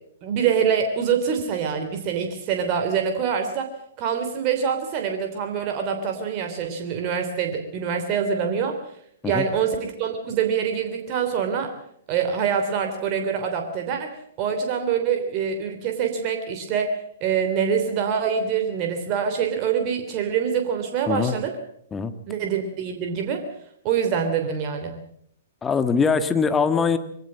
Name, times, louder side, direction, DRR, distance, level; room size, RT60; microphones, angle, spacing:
voice 1, 0.2-3.7 4.0-8.8 9.2-11.7 12.1-14.1 14.4-21.5 22.3-23.4 23.8-25.0, right 7 dB, 35° right, 5 dB, 3.1 m, -25 dB
voice 2, 25.6-27.0, left 5 dB, 15° left, 10 dB, 1.5 m, -22 dB
23.0 x 17.5 x 7.4 m, 0.69 s
figure-of-eight pair, 115°, 0 cm